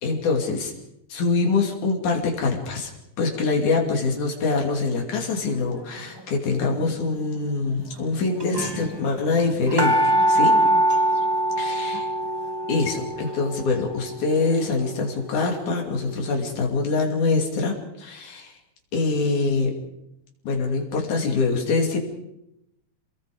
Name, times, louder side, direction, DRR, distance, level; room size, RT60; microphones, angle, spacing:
voice 1, 0.0-0.7 1.1-2.9 3.2-10.6 11.6-12.1 12.7-18.5 18.9-19.7 20.4-22.0, left 3 dB, 90° left, 1 dB, 4.3 m, -24 dB
sound 1, 6.6-7.0 7.8-7.9 8.1-8.2 8.4-16.0 16.5-16.6, right 1 dB, 40° right, 0.3 m, -24 dB
28.5 x 21.5 x 5.1 m, 0.84 s
omnidirectional pair, 3.3 m